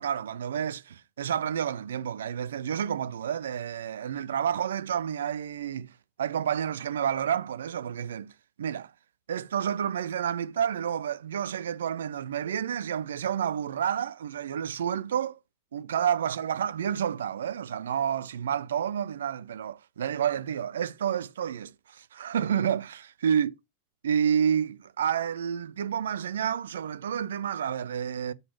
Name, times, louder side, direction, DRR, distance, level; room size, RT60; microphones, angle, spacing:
voice 1, 0.0-8.3 8.6-8.9 9.3-15.4 15.7-23.5 24.0-28.3, right 8 dB, 65° right, 0.4 m, -30 dB
5.8 x 4.0 x 4.7 m
figure-of-eight pair, 90°, 0 cm